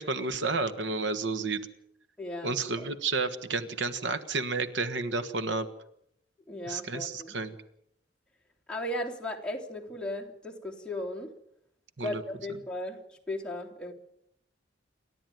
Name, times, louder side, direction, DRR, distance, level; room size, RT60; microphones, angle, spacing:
voice 1, 0.0-1.7 2.4-5.7 6.7-7.5 12.0-12.2, right 3 dB, 90° right, 12 dB, 1.5 m, -31 dB
voice 2, 2.2-2.9 6.5-7.4 8.7-11.3 12.0-13.9, left 1 dB, 5° left, -2 dB, 3.0 m, -36 dB
28.0 x 12.5 x 9.4 m, 0.75 s
head